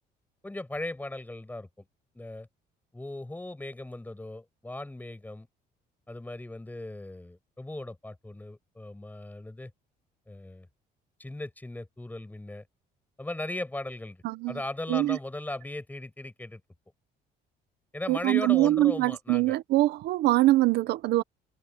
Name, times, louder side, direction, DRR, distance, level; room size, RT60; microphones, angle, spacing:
voice 1, 0.4-1.8 2.1-2.5 2.9-5.5 6.1-9.7 10.3-10.7 11.2-12.6 13.2-16.6 17.9-19.6, left 2 dB, 10° left, 7.4 m, -38 dB
voice 2, 14.2-14.6 14.9-15.2 18.1-21.2, right 17 dB, 80° right, 1.1 m, -23 dB
cardioid pair, 110°, 17 cm